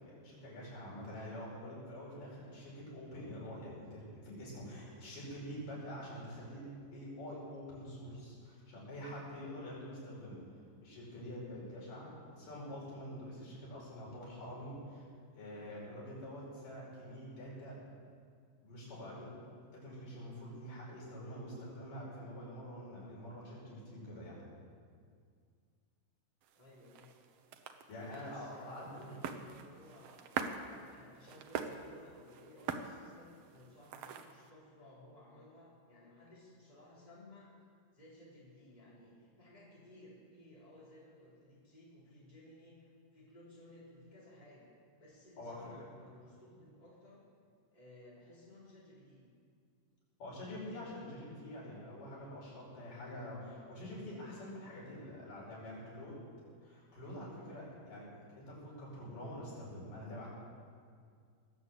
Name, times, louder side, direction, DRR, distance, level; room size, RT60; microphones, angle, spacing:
voice 1, 0.0-10.4 10.8-15.1 15.3-17.8 18.6-19.3 19.7-24.4 27.9-29.2 45.4-45.9 50.2-60.3, equal, 90° left, -6 dB, 6.8 m, -46 dB
sound 1, 26.4-34.5, right 6 dB, 70° right, 1.5 m, -44 dB
voice 2, 26.5-27.1 28.2-30.3 30.7-37.5 37.9-44.7 45.0-47.3 47.7-49.2, left 1 dB, 10° left, -7 dB, 3.9 m, -58 dB
20.0 x 8.0 x 7.9 m, 2.1 s
omnidirectional pair, 3.7 m